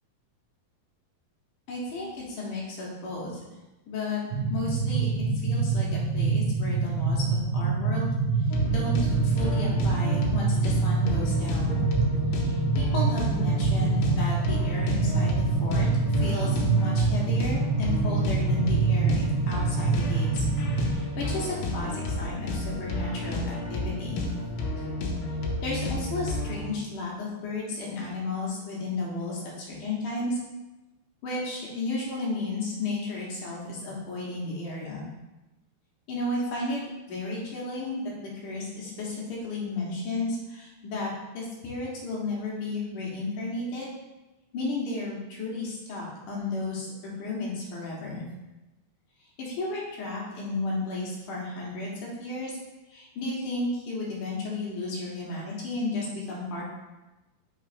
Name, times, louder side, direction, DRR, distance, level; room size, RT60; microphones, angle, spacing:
voice 1, 1.7-3.4 3.9-5.1 5.4-8.1 8.7-11.8 12.4-20.4 20.9-24.2 25.6-30.4 31.2-35.0 36.1-36.8 37.1-43.9 44.5-48.2 49.4-52.6 52.9-56.7, left 2 dB, 65° left, -4 dB, 2.3 m, -33 dB
sound 1, 4.3-20.9, right 4 dB, 85° right, 2.4 m, -26 dB
sound 2, 8.5-26.7, left 2 dB, 80° left, 2.0 m, -31 dB
6.0 x 3.5 x 5.0 m, 1.1 s
omnidirectional pair, 4.9 m